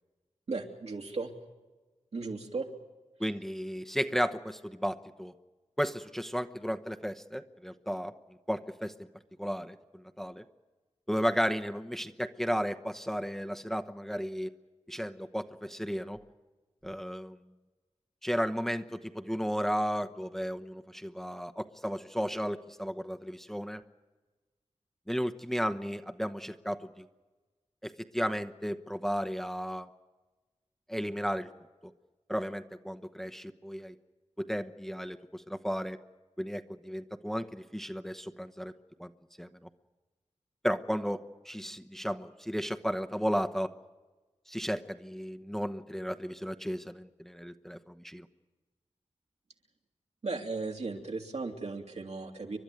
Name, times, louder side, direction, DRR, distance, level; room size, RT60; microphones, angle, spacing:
voice 1, 0.5-1.3 2.1-2.7 50.2-52.6, right 3 dB, 70° right, 2 dB, 2.8 m, -36 dB
voice 2, 3.2-5.3 5.8-8.1 8.5-9.1 9.4-10.4 11.1-14.5 14.9-16.3 16.8-17.4 18.2-23.8 25.1-27.0 27.8-29.9 30.9-31.5 31.8-31.9 32.3-33.9 34.4-36.0 36.4-38.7 39.0-39.1 39.4-39.7 40.6-43.7 44.5-48.3, equal, 5° left, 7 dB, 1.0 m, -34 dB
29.5 x 12.0 x 9.2 m, 1.2 s
wide cardioid pair, 65°, 12 cm